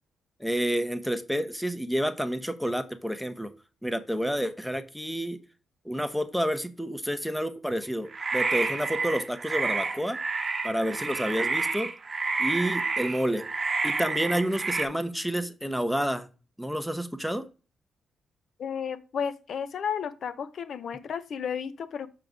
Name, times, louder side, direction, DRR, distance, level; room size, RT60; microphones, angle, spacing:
voice 1, 0.4-3.5 3.8-5.4 5.8-10.2 10.6-11.9 12.4-13.5 13.8-16.3 16.6-17.4, equal, ahead, 0.7 m, -29 dB
sound 1, 8.1-14.9, right 4 dB, 35° right, 0.9 m, -29 dB
voice 2, 18.6-22.1, left 7 dB, 65° left, 0.6 m, -33 dB
6.5 x 3.8 x 4.8 m
cardioid pair, 90°, 0 cm